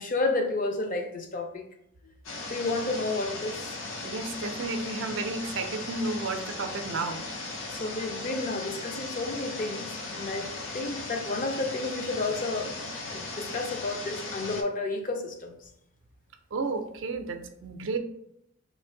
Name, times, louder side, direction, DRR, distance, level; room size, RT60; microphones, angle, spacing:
voice 1, 0.0-1.6 2.5-3.8 7.7-12.7 13.1-15.5, left 2 dB, 40° left, 4 dB, 0.5 m, -31 dB
sound 1, 2.2-14.6, left 3 dB, 85° left, 0.7 m, -37 dB
voice 2, 4.0-7.2 16.5-18.0, right 3 dB, 65° right, 6 dB, 0.4 m, -32 dB
3.1 x 2.6 x 3.7 m, 0.75 s
head